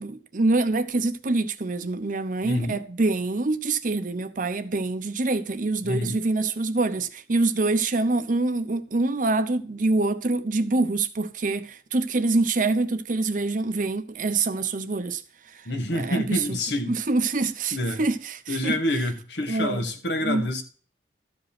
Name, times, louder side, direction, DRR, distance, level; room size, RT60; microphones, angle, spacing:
voice 1, 0.0-16.6 16.9-18.8 19.5-19.9 20.2-20.5, right 3 dB, 50° right, 0.8 m, -25 dB
voice 2, 2.4-2.8 5.8-6.2 15.7-16.9 17.7-18.0 18.5-20.6, left 1 dB, 75° left, 1.7 m, -27 dB
13.0 x 5.2 x 5.9 m
head